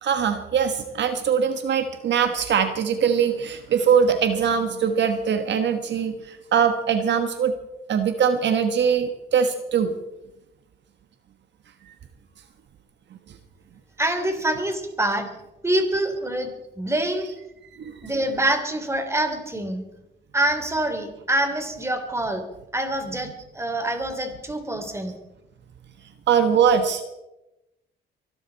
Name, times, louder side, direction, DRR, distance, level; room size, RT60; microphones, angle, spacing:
voice 1, 0.0-7.5 7.9-9.9 17.2-17.3 17.7-18.2 26.3-27.0, right 7 dB, 65° right, 7 dB, 1.4 m, -22 dB
voice 2, 14.0-15.3 15.6-17.3 18.0-19.8 20.3-22.4 22.7-25.1, right 1 dB, 15° right, 6 dB, 3.5 m, -25 dB
24.0 x 12.5 x 4.2 m, 0.95 s
cardioid pair, 90°, 20 cm